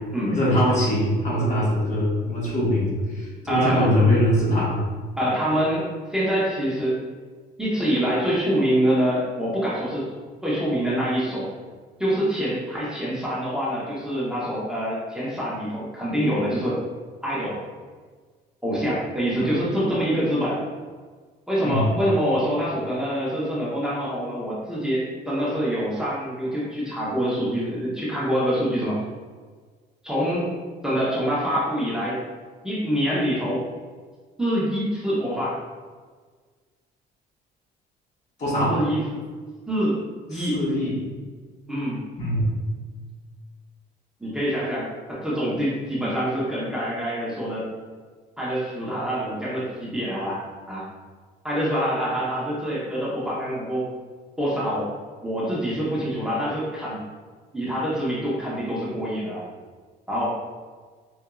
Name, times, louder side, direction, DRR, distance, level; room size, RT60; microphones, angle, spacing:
voice 1, 0.3-4.8 19.4-19.5 21.6-21.9 38.4-38.8 40.3-41.0 42.2-42.4, left 1 dB, 45° left, -6 dB, 1.4 m, -22 dB
voice 2, 3.5-3.9 5.2-7.0 7.6-10.1 10.4-11.5 12.0-16.8 17.2-17.6 18.6-20.6 21.5-29.0 30.0-30.5 30.8-32.2 32.6-33.6 34.4-35.6 38.7-39.0 39.7-40.0 40.3-40.6 41.7-42.0 44.2-47.7 48.4-50.9 51.4-53.9 54.4-54.9 55.2-57.0 57.5-59.4 60.1-60.4, equal, 5° right, -8 dB, 0.9 m, -25 dB
4.7 x 2.6 x 2.3 m, 1.5 s
cardioid pair, 110°, 17 cm